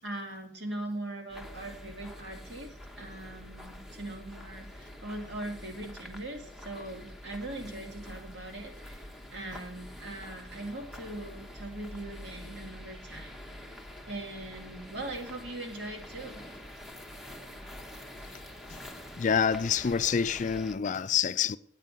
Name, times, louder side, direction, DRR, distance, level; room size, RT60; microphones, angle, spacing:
voice 1, 0.0-13.8 14.1-16.4, right 1 dB, 70° right, 2.6 m, -41 dB
sound 1, 1.3-20.8, left 1 dB, ahead, 0.9 m, -46 dB
voice 2, 19.2-21.6, left 7 dB, 45° left, 0.4 m, -27 dB
9.3 x 8.9 x 5.3 m
head